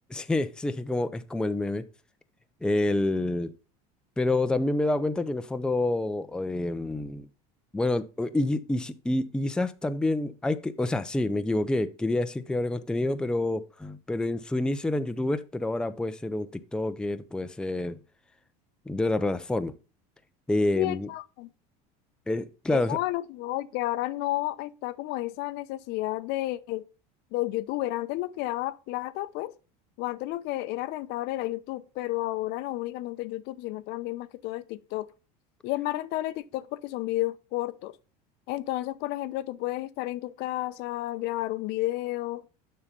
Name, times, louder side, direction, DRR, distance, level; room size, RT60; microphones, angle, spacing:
voice 1, 0.1-1.8 2.6-3.5 4.2-7.3 7.7-18.0 18.9-19.7 20.5-21.1 22.3-23.0, left 2 dB, 5° left, 0.5 m, -28 dB
voice 2, 20.7-21.5 22.7-26.8 27.3-29.5 30.0-35.1 35.6-38.0 38.5-42.4, left 16 dB, 60° left, 0.7 m, -31 dB
7.1 x 5.6 x 5.2 m
supercardioid pair, 110°, 20 cm